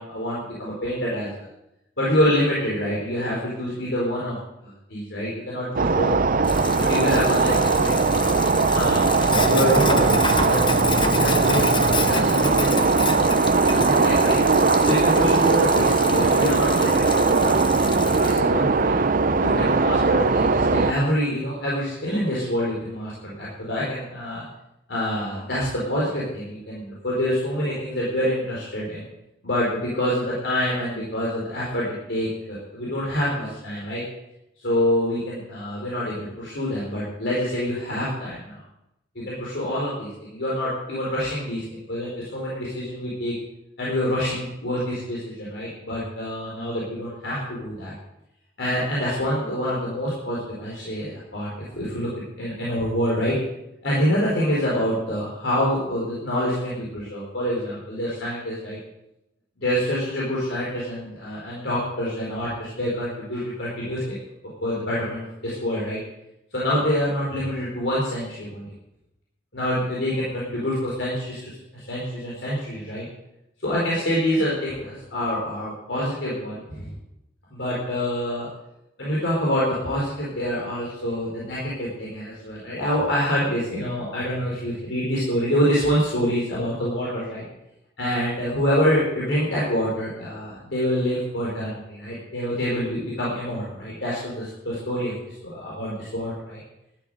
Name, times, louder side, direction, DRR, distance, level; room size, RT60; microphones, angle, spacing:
voice 1, 0.0-1.5 2.0-4.4 4.6-6.1 6.8-8.0 8.7-9.0 9.5-10.7 11.2-11.7 12.0-14.4 14.8-19.0 19.4-24.4 24.9-29.0 29.4-34.0 34.6-38.6 39.1-43.3 43.8-47.9 48.6-52.1 52.4-53.4 53.8-58.8 59.6-64.1 64.6-66.0 66.5-68.7 69.5-73.1 73.6-76.9 77.5-78.5 79.0-87.4 88.0-96.6, equal, 70° left, -6 dB, 4.7 m, -26 dB
sound 1, 5.8-20.9, right 4 dB, 50° right, 0.7 m, -20 dB
Sink (filling or washing), 6.4-18.4, left 4 dB, 25° left, 1.1 m, -30 dB
13.0 x 11.5 x 6.7 m, 0.86 s
head